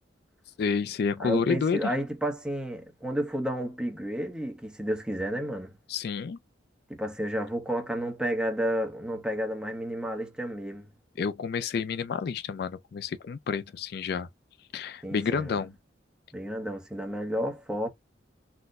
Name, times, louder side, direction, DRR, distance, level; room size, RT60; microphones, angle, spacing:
voice 1, 0.6-1.9 5.9-6.4 11.2-14.3 14.7-15.7, left 5 dB, 55° left, 0.3 m, -29 dB
voice 2, 1.2-5.8 6.9-10.9 15.0-15.5 16.3-17.9, equal, 5° right, 0.8 m, -31 dB
4.0 x 2.1 x 2.4 m
head